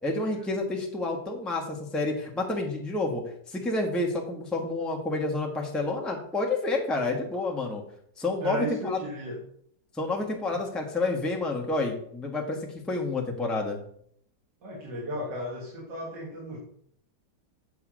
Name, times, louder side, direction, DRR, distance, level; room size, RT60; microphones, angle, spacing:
voice 1, 0.0-3.2 3.5-7.8 8.2-9.0 10.0-12.6 12.9-13.8, left 2 dB, ahead, 0 dB, 1.3 m, -29 dB
voice 2, 8.4-9.4 14.6-16.6, equal, 90° right, -4 dB, 2.5 m, -34 dB
7.8 x 5.4 x 6.3 m, 0.65 s
omnidirectional pair, 1.9 m